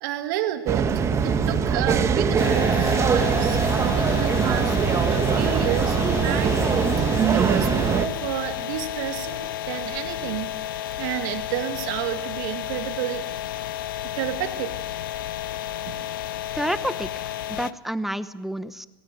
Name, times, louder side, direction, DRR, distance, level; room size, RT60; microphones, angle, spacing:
voice 1, 0.0-4.8 5.1-7.1 7.3-10.5 11.0-13.2 14.1-14.8 15.9-16.1, right 13 dB, 60° right, 7 dB, 2.2 m, -31 dB
sound 1, 0.7-8.1, right 6 dB, 25° right, 1.5 m, -22 dB
sound 2, 2.4-17.7, left 12 dB, 65° left, 0.7 m, -32 dB
voice 2, 16.5-18.9, equal, ahead, 14 dB, 0.8 m, -29 dB
19.0 x 17.5 x 7.9 m, 1.0 s
hypercardioid pair, 110°, 12 cm